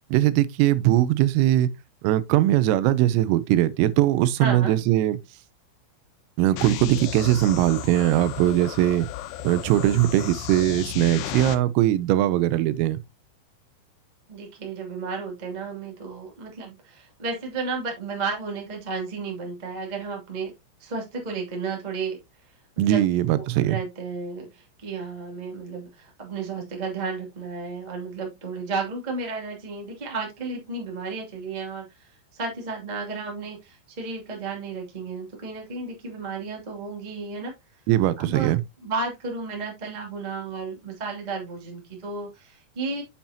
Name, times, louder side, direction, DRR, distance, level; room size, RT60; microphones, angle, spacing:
voice 1, 0.1-1.7 2.0-5.2 6.4-9.1 9.4-13.0 22.8-23.8 37.9-38.6, right 14 dB, 90° right, 3.4 m, -21 dB
voice 2, 4.4-4.7 14.3-20.5 20.8-22.2 22.7-37.5 38.2-38.5 38.8-43.0, right 4 dB, 25° right, 0.9 m, -33 dB
sound 1, 6.6-11.6, left 14 dB, 85° left, 2.9 m, -34 dB
7.5 x 7.2 x 2.8 m
omnidirectional pair, 5.8 m